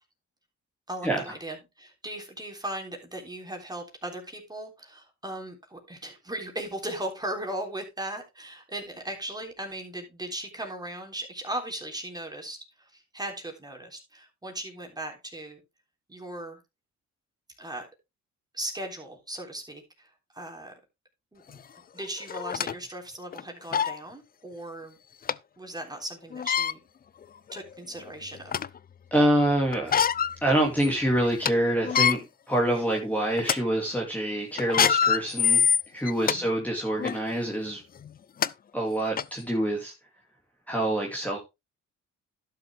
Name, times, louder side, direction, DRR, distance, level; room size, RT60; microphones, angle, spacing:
voice 1, 0.9-15.6 16.1-16.6 17.6-17.9 18.5-20.7 21.3-21.6 21.9-25.0 25.6-26.8 27.5-28.5 36.3-36.5, right 1 dB, 15° right, 3.5 m, -38 dB
sound 1, 21.5-21.6 22.3-22.7 23.3-23.4 23.7-24.0 25.3-25.4 26.3-26.7 27.5-27.6 28.1-28.8 29.7-30.4 30.8-30.9 31.2-31.5 31.8-32.2 32.8-33.0 33.4-33.6 34.6-36.4 37.0-37.2 38.0-38.1 38.4-38.5 39.2-39.3, left 7 dB, 30° left, 0.5 m, -24 dB
voice 2, 29.1-30.0 30.4-32.2 32.5-35.6 35.9-37.8 38.7-39.9 40.7-41.4, right 1 dB, 5° left, 2.4 m, -26 dB
11.5 x 6.8 x 3.5 m
cardioid pair, 90°, 30 cm